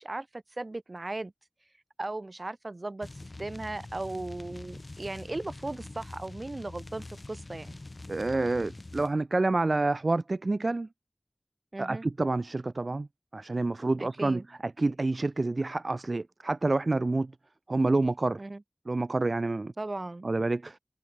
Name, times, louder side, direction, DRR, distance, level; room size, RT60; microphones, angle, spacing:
voice 1, 0.0-1.3 2.0-3.1 3.4-7.8 11.7-12.0 14.0-14.4 18.4-18.6 19.8-20.3, right 2 dB, 65° right, 1.5 m, -37 dB
sound 1, 3.0-9.1, left 2 dB, 70° left, 0.7 m, -44 dB
voice 2, 8.1-10.9 11.8-13.1 13.3-14.4 14.8-17.3 17.7-18.4 18.9-19.7 20.2-20.8, right 2 dB, 90° right, 0.5 m, -28 dB
wide cardioid pair, 45°, 0 cm